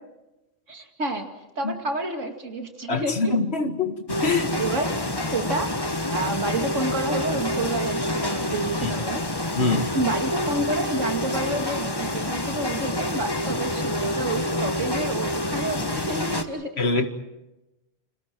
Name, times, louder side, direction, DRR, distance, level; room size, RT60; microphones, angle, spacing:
voice 1, 0.7-1.3 1.6-3.3 4.6-4.9 5.3-5.7 6.1-9.2 9.9-17.1, right 2 dB, 90° right, 5 dB, 2.8 m, -29 dB
voice 2, 2.9-4.6 8.8-8.9 9.6-9.9 16.8-17.1, left 3 dB, 60° left, 7 dB, 2.1 m, -24 dB
sound 1, 4.1-16.4, left 1 dB, 20° left, 1.5 m, -27 dB
30.0 x 27.5 x 4.6 m, 0.97 s
omnidirectional pair, 1.3 m